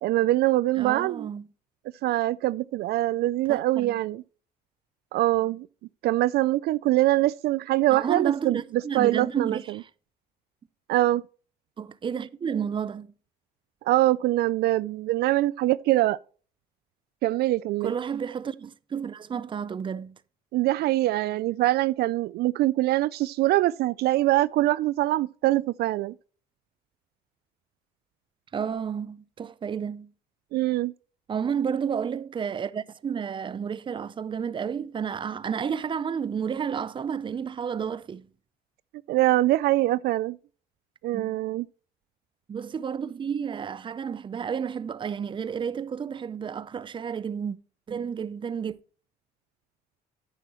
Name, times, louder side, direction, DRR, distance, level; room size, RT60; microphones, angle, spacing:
voice 1, 0.0-1.3 2.0-4.2 5.1-5.7 6.0-9.8 10.9-11.2 13.8-16.2 17.2-17.9 20.5-26.1 30.5-30.9 39.1-40.4 41.0-41.7, right 16 dB, 70° right, 0.4 m, -23 dB
voice 2, 0.8-1.4 3.5-4.0 7.9-9.9 11.8-13.1 17.8-20.2 28.5-30.1 31.3-38.3 41.1-41.4 42.5-47.6 47.9-48.8, right 7 dB, 30° right, 0.6 m, -31 dB
9.9 x 9.8 x 3.0 m
cardioid pair, 110°, 17 cm